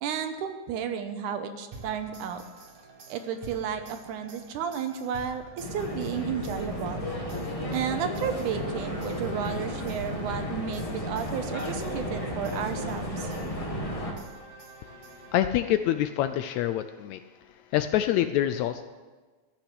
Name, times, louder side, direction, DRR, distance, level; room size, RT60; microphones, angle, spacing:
voice 1, 0.0-2.4 3.1-7.1 7.7-13.3, right 7 dB, 85° right, 8 dB, 2.4 m, -32 dB
sound 1, 1.7-15.8, right 3 dB, 65° right, 3.0 m, -47 dB
sound 2, 5.6-14.1, equal, 45° left, 0.4 m, -33 dB
voice 2, 15.3-17.2 17.7-18.9, left 12 dB, 80° left, 10 dB, 1.7 m, -26 dB
15.0 x 6.1 x 9.9 m, 1.3 s
omnidirectional pair, 3.6 m